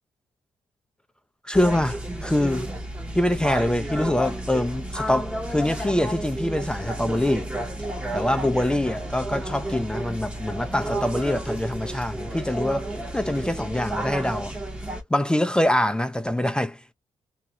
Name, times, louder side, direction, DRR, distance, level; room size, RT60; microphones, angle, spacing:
voice 1, 1.4-2.7 3.1-7.5 8.1-14.5 15.1-16.8, left 1 dB, 10° left, 0.3 m, -24 dB
sound 1, 1.5-15.0, right 1 dB, 10° right, 0.7 m, -32 dB
2.3 x 2.0 x 2.6 m
cardioid pair, 105°, 11 cm